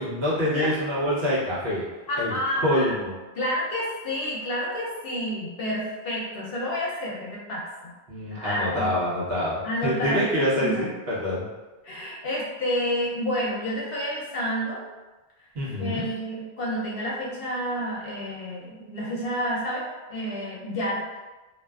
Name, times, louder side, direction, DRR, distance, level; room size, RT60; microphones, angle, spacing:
voice 1, 0.0-1.8 2.2-2.4 2.6-3.1 8.1-11.5 15.5-16.0, equal, 65° right, -8 dB, 1.1 m, -26 dB
voice 2, 2.1-2.9 3.4-7.9 8.3-8.9 9.6-10.9 11.8-14.8 15.8-21.2, equal, 60° left, -4 dB, 0.8 m, -29 dB
2.5 x 2.3 x 2.2 m, 1.2 s
omnidirectional pair, 1.1 m